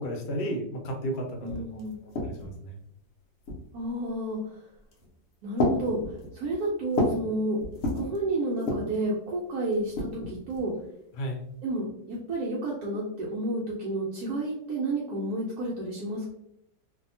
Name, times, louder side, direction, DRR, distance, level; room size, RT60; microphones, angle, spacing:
voice 1, 0.0-2.8 11.1-11.4, equal, 75° left, 1 dB, 1.2 m, -34 dB
sound 1, 1.1-1.2 1.5-2.6 3.4-3.9 4.8-5.1 5.6-7.3 7.6-8.2 8.6-9.0 9.7-10.7, left 1 dB, 60° left, 1.0 m, -31 dB
voice 2, 1.4-2.0 3.7-4.7 5.4-7.6 7.9-10.7 11.6-16.3, right 1 dB, 70° right, -5 dB, 1.0 m, -31 dB
2.7 x 2.6 x 2.6 m, 0.76 s
omnidirectional pair, 1.9 m